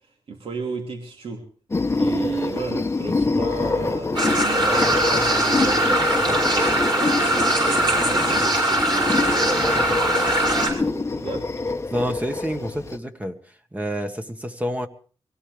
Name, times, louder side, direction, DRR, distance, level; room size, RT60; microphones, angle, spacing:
voice 1, 0.3-1.5 1.9-11.5, right 3 dB, 65° right, 1 dB, 3.0 m, -33 dB
sound 1, 1.7-13.0, left 3 dB, 25° left, 1.1 m, -26 dB
sound 2, 4.1-10.7, right 1 dB, 45° right, 6.0 m, -21 dB
voice 2, 11.9-13.4 13.7-14.9, equal, 15° right, 6 dB, 1.6 m, -28 dB
23.5 x 17.0 x 3.5 m, 0.41 s
cardioid pair, 85°, 10 cm